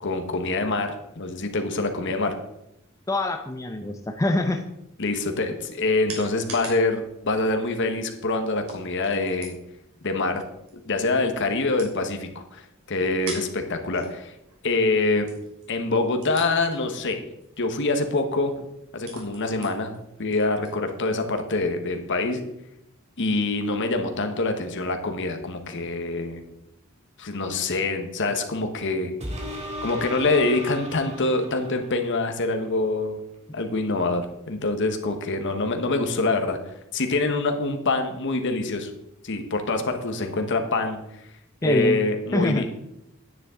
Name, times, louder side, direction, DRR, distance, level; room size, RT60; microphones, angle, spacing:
voice 1, 0.0-2.3 5.0-9.5 10.0-10.4 10.9-12.6 12.9-14.3 14.6-15.3 15.7-17.2 17.6-18.5 18.9-19.9 20.2-22.4 23.2-26.4 27.2-29.1 29.8-33.2 33.5-36.6 36.9-38.9 39.2-41.0 41.6-42.7, left 3 dB, 60° left, 5 dB, 1.2 m, -25 dB
voice 2, 3.1-4.6 41.6-42.0 42.3-42.6, left 1 dB, 15° left, 4 dB, 0.6 m, -24 dB
sound 1, 5.2-21.6, right 3 dB, 85° right, 3.2 m, -46 dB
sound 2, 29.2-32.1 32.7-32.8, equal, 30° right, 2.0 m, -35 dB
9.8 x 9.7 x 3.8 m, 0.83 s
head